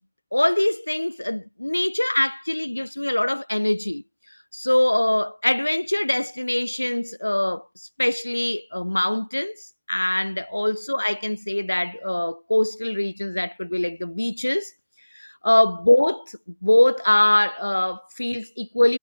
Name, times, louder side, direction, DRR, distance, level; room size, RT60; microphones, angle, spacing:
voice 1, 0.3-4.0 4.5-14.7 15.1-19.0, left 1 dB, 85° left, 3.0 m, -23 dB
figure-of-eight pair, 90°, 0 cm